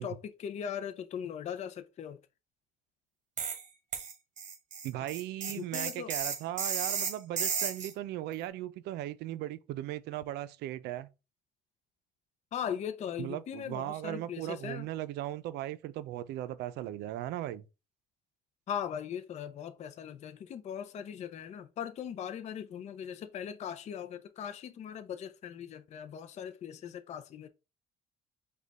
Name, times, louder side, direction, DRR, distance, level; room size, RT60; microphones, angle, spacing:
voice 1, 0.0-2.2 5.5-6.1 12.5-14.9 18.7-27.5, left 8 dB, 40° left, 0.4 m, -39 dB
sound 1, 3.4-3.6 3.9-7.9, right 6 dB, 45° right, 1.1 m, -34 dB
voice 2, 4.8-11.1 13.2-17.7, right 13 dB, 80° right, 0.4 m, -37 dB
5.1 x 2.3 x 4.0 m
cardioid pair, 110°, 17 cm